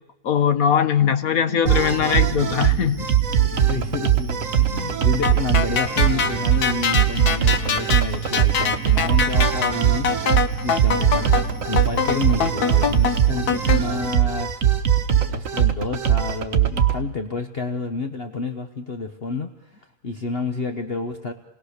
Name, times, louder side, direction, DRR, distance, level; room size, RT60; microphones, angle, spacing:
voice 1, 0.2-3.1, left 8 dB, 65° left, 11 dB, 1.5 m, -20 dB
sound 1, 1.7-17.0, right 9 dB, 60° right, 1.4 m, -21 dB
voice 2, 3.4-10.1 10.6-11.3 11.6-14.8 15.1-21.3, left 3 dB, 45° left, 6 dB, 1.2 m, -29 dB
sound 2, 5.2-13.8, left 6 dB, 85° left, 1.7 m, -23 dB
28.0 x 20.5 x 6.6 m, 0.89 s
omnidirectional pair, 1.6 m